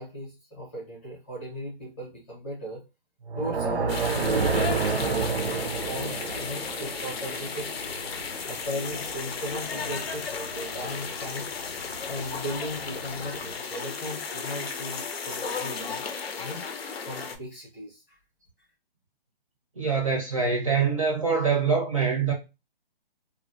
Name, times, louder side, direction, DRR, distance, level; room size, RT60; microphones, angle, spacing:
voice 1, 0.0-2.8 3.4-7.9 8.5-11.5 12.1-16.0 16.4-16.6 17.1-18.2, equal, 10° left, 0.7 m, -37 dB
sound 1, 3.2-8.4, right 5 dB, 85° right, 0.6 m, -29 dB
sound 2, 3.4-13.6, left 1 dB, 50° left, 0.6 m, -47 dB
sound 3, 3.9-17.4, left 5 dB, 90° left, 0.6 m, -34 dB
voice 2, 19.8-22.3, right 5 dB, 35° right, 0.5 m, -24 dB
2.5 x 2.0 x 2.4 m
hypercardioid pair, 165°, 30 cm